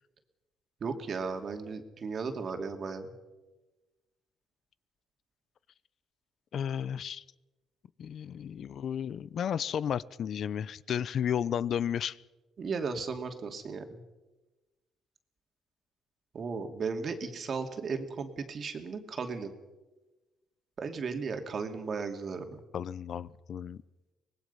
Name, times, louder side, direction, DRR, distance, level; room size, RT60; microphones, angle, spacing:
voice 1, 0.8-3.1 12.6-14.0 16.3-19.5 20.8-22.6, right 5 dB, 50° right, 5 dB, 2.6 m, -35 dB
voice 2, 6.5-7.2 8.0-12.2 22.7-23.8, left 8 dB, 60° left, 18 dB, 0.7 m, -33 dB
24.5 x 20.0 x 5.6 m, 1.1 s
cardioid pair, 90°, 0 cm